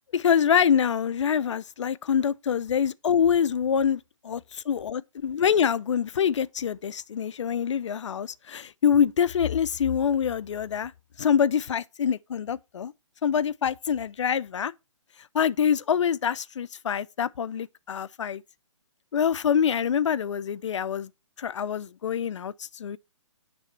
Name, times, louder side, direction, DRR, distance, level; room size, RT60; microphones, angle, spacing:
voice 1, 0.1-10.9 11.2-12.9 13.2-14.7 15.3-18.4 19.1-21.1 21.4-23.0, left 8 dB, 65° left, 0.4 m, -25 dB
9.0 x 3.4 x 4.2 m
figure-of-eight pair, 140°, 17 cm